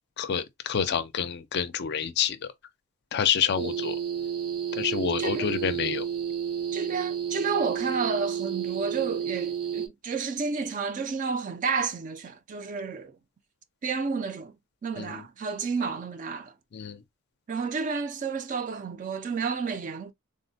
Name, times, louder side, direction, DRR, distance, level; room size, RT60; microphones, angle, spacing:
voice 1, 0.2-2.5 3.1-4.0 4.7-6.1 15.0-15.2 16.7-17.0, left 7 dB, 50° left, 0.4 m, -28 dB
sound 1, 3.5-9.9, right 8 dB, 90° right, 0.8 m, -31 dB
voice 2, 6.7-13.1 13.8-14.5 14.8-16.5 17.5-20.1, right 5 dB, 35° right, 0.3 m, -31 dB
3.5 x 2.0 x 2.6 m
head